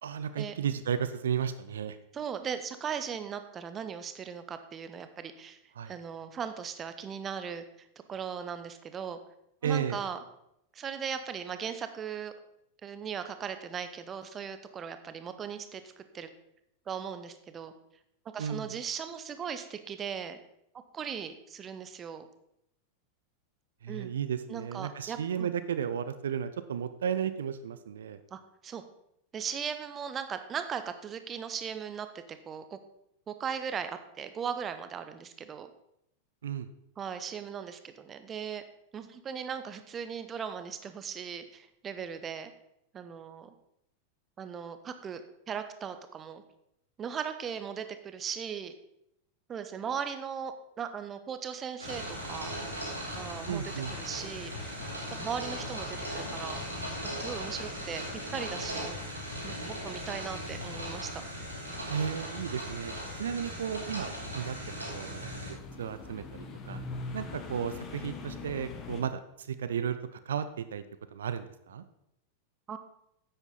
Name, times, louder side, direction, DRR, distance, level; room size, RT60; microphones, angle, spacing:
voice 1, 0.0-2.0 5.8-5.9 9.6-10.0 18.4-18.7 23.8-28.2 36.4-36.7 53.5-53.9 61.9-66.8 67.1-70.8 71.1-71.8, right 8 dB, 65° right, 12 dB, 0.5 m, -34 dB
voice 2, 2.1-5.6 5.9-9.2 9.6-10.2 10.7-12.3 12.8-16.3 16.9-17.7 18.3-20.4 20.9-22.3 23.9-24.1 24.5-25.5 28.3-28.8 29.3-32.8 33.3-35.7 37.0-38.6 38.9-42.5 42.9-43.5 44.4-45.2 45.5-46.4 47.0-48.7 49.5-52.6 53.2-53.6 54.0-54.8 55.2-56.6 57.2-58.9 59.4-61.2 72.7-72.8, right 7 dB, 25° right, 9 dB, 0.8 m, -38 dB
sound 1, 51.8-69.0, left 4 dB, 30° left, 1.5 m, -46 dB
sound 2, 51.8-65.5, equal, 85° right, 2.9 m, -38 dB
10.0 x 8.1 x 4.0 m, 0.79 s
figure-of-eight pair, 90°, 0 cm